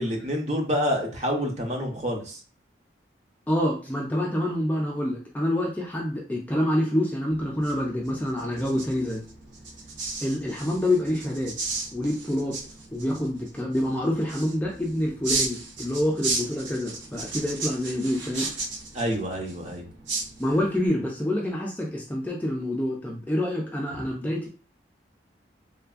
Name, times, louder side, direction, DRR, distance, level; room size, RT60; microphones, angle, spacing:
voice 1, 0.0-2.4 18.9-19.9, equal, 40° right, 1 dB, 0.6 m, -28 dB
voice 2, 3.5-9.2 10.2-11.5 11.9-12.6 12.9-18.5 20.4-24.5, left 1 dB, 10° left, -3 dB, 0.4 m, -27 dB
sound 1, 7.3-20.9, right 3 dB, 90° right, 0.6 m, -35 dB
3.2 x 2.1 x 2.4 m, 0.40 s
head